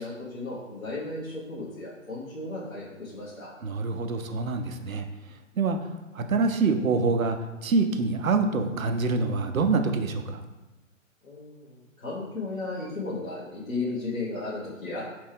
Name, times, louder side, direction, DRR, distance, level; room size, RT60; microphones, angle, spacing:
voice 1, 0.0-3.5 11.2-15.1, left 3 dB, 80° left, -9 dB, 1.3 m, -35 dB
voice 2, 3.6-5.1 5.6-5.8 6.1-7.4 7.6-10.4, right 4 dB, 80° right, 7 dB, 0.6 m, -25 dB
4.4 x 3.4 x 3.3 m, 1.0 s
figure-of-eight pair, 135°, 41 cm